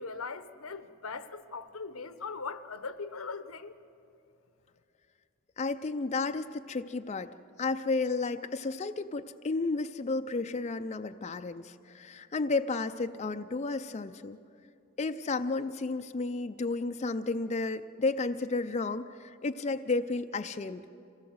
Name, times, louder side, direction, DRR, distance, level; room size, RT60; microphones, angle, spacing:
voice 1, 0.0-3.8, left 4 dB, 85° left, 0.9 m, -40 dB
voice 2, 5.6-7.3 7.6-14.4 15.0-20.8, left 3 dB, 30° left, 0.5 m, -32 dB
26.0 x 17.5 x 7.9 m
head